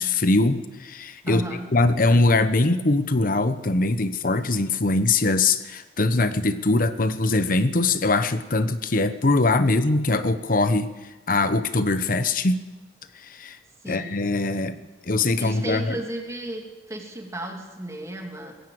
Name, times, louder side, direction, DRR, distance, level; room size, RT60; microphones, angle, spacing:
voice 1, 0.0-1.4 1.7-10.9 11.3-12.6 13.1-13.6 13.9-16.0, left 2 dB, 50° left, 11 dB, 1.0 m, -22 dB
voice 2, 1.3-1.7 13.8-14.2 15.4-16.6 16.9-18.5, right 1 dB, 15° right, 2 dB, 2.8 m, -33 dB
20.5 x 16.5 x 7.8 m, 1.1 s
head